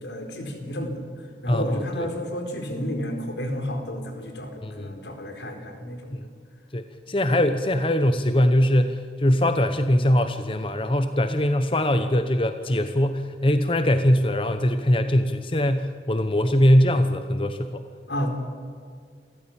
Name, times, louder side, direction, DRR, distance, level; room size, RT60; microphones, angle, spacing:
voice 1, 0.0-6.2 18.1-18.3, equal, 80° left, 5 dB, 4.4 m, -31 dB
voice 2, 1.5-2.1 4.6-4.9 6.1-6.3 6.7-17.8, left 1 dB, 30° left, 9 dB, 0.9 m, -22 dB
28.0 x 14.5 x 8.9 m, 2.1 s
head